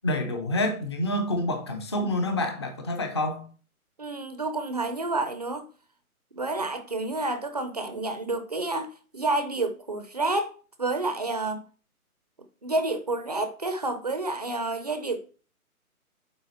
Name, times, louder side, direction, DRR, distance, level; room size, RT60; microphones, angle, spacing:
voice 1, 0.0-3.5, left 1 dB, 20° left, 0.6 m, -27 dB
voice 2, 4.0-5.6 6.3-10.5 10.8-11.6 12.6-15.2, right 2 dB, 30° right, 0.5 m, -29 dB
9.2 x 3.8 x 4.1 m
figure-of-eight pair, 150°, 44 cm